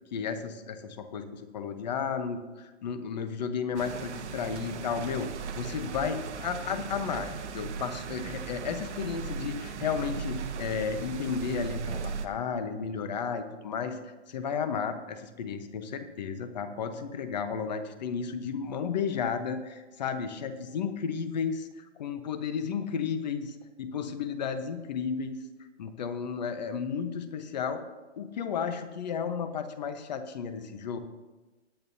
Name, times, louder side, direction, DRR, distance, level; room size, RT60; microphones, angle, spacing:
voice 1, 0.1-5.3 5.5-14.0 14.3-25.4 25.8-27.8 28.2-31.0, left 6 dB, 35° left, 9 dB, 1.0 m, -33 dB
sound 1, 3.8-12.3, right 6 dB, 75° right, 1.1 m, -37 dB
19.5 x 9.2 x 2.7 m, 1.2 s
hypercardioid pair, 170°, 35 cm